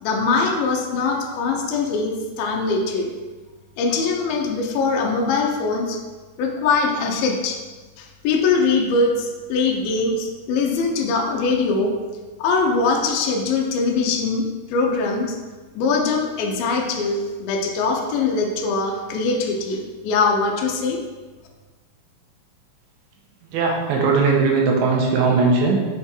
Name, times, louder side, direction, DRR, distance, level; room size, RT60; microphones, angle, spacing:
voice 1, 0.0-3.1 3.8-6.0 6.4-7.6 8.0-11.9 12.4-15.4 15.8-21.0, left 4 dB, 75° left, 1 dB, 2.4 m, -22 dB
voice 2, 23.5-25.8, right 4 dB, 80° right, -1 dB, 2.6 m, -19 dB
6.7 x 3.5 x 4.3 m, 1.3 s
omnidirectional pair, 4.5 m